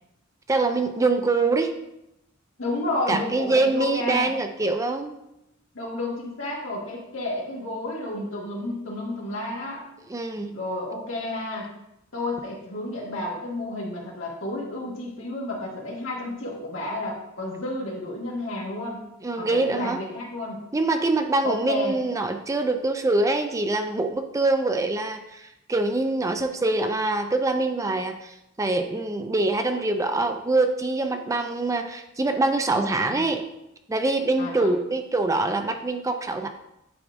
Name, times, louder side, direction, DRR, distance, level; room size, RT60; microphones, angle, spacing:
voice 1, 0.5-1.7 3.1-5.2 10.1-10.6 19.2-20.0 20.7-33.4 33.9-36.5, right 2 dB, 15° right, 6 dB, 0.4 m, -24 dB
voice 2, 2.6-4.3 5.7-9.9 10.5-11.7 12.1-19.1 19.4-20.6 21.4-22.0 32.7-33.3 34.4-34.7, left 2 dB, 85° left, -3 dB, 1.8 m, -31 dB
9.3 x 4.8 x 2.5 m, 0.86 s
head